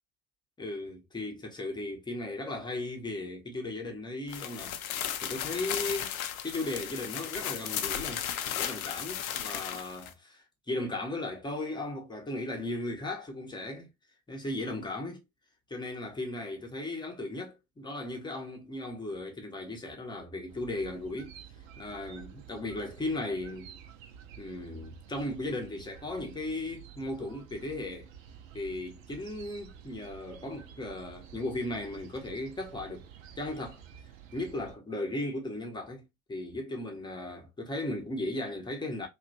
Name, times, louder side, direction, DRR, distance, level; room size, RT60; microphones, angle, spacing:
voice 1, 0.6-6.1 6.4-13.9 14.3-15.2 15.7-21.3 21.8-23.7 24.4-28.1 28.5-33.1 33.4-33.8 34.3-36.0 36.3-39.1, left 2 dB, 10° left, 0.8 m, -36 dB
sound 1, 4.3-10.1, left 10 dB, 75° left, 0.5 m, -35 dB
sound 2, 20.5-34.7, right 8 dB, 65° right, 0.7 m, -51 dB
2.9 x 2.4 x 2.6 m
figure-of-eight pair, 70°, 43 cm